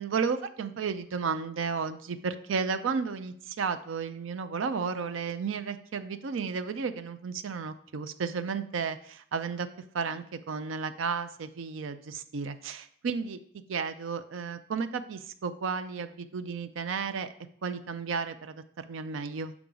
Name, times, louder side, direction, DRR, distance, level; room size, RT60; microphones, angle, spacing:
voice 1, 0.0-9.7 9.9-13.4 13.7-17.3 17.6-19.5, right 5 dB, 75° right, 11 dB, 0.4 m, -33 dB
7.0 x 4.8 x 3.8 m, 0.62 s
head